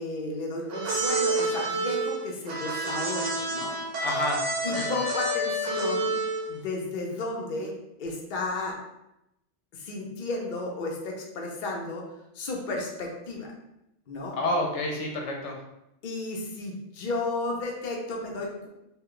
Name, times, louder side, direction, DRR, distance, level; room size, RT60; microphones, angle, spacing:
voice 1, 0.0-3.7 4.6-6.1 6.5-7.7 8.0-8.8 9.7-12.1 12.3-13.5 14.1-14.4 16.0-18.7, left 2 dB, 50° left, 0 dB, 0.7 m, -33 dB
sound 1, 0.7-6.6, right 2 dB, 85° right, 1.0 m, -29 dB
voice 2, 4.0-4.9 14.4-15.6, left 1 dB, 80° left, 1 dB, 0.9 m, -29 dB
3.0 x 2.2 x 3.7 m, 0.86 s
omnidirectional pair, 1.2 m